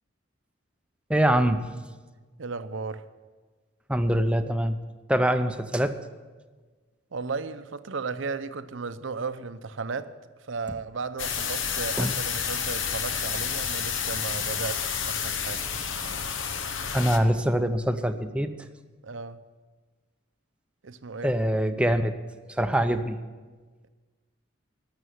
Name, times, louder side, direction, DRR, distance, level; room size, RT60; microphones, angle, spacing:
voice 1, 1.1-1.6 3.9-4.8 5.1-6.0 12.0-12.1 16.9-18.5 21.2-22.2 22.5-23.2, equal, 5° right, 0.5 m, -24 dB
voice 2, 2.4-3.0 7.1-10.1 10.4-15.7 19.0-19.4 20.8-21.4, right 4 dB, 75° right, 0.6 m, -35 dB
sound 1, 11.2-17.2, left 7 dB, 75° left, 1.0 m, -30 dB
12.5 x 6.8 x 9.3 m
head